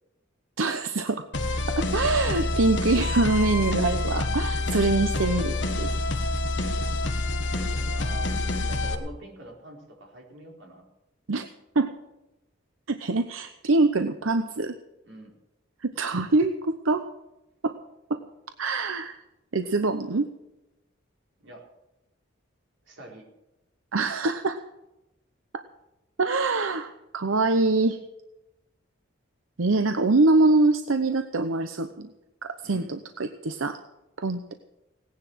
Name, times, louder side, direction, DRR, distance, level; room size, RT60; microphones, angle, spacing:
voice 1, 0.6-1.3 1.8-5.9 11.3-11.5 11.8-11.9 12.9-14.8 15.8-17.0 17.6-17.7 18.1-18.2 18.6-19.2 19.5-20.3 23.9-24.6 25.5-25.6 26.2-28.0 29.6-32.1 32.4-33.8 34.2-34.5, right 3 dB, 90° right, 9 dB, 0.8 m, -24 dB
sound 1, 1.3-8.9, left 2 dB, 65° left, 1.4 m, -27 dB
voice 2, 1.9-2.6 7.6-10.9 15.0-15.3 21.4-21.6 22.9-23.3 32.6-32.9 34.5-34.6, right 2 dB, 70° right, -1 dB, 4.2 m, -45 dB
17.5 x 10.5 x 6.2 m, 0.95 s
head